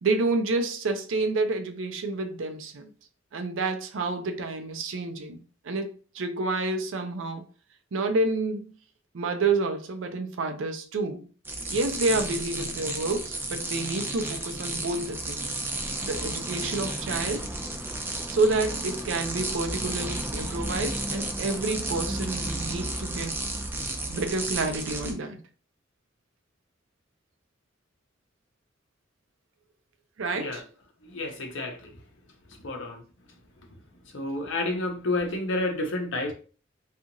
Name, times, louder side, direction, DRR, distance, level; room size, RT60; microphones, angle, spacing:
voice 1, 0.0-2.9 3.3-7.4 7.9-8.7 9.1-11.2 11.7-15.5 16.0-17.5 18.3-23.3 24.1-25.4 30.2-30.6, right 3 dB, 75° right, 0.5 m, -29 dB
sound 1, 11.4-25.1, right 2 dB, 10° right, 0.4 m, -32 dB
voice 2, 31.1-31.7 32.6-33.0 34.1-36.3, left 2 dB, 65° left, 0.7 m, -29 dB
2.8 x 2.4 x 2.6 m
head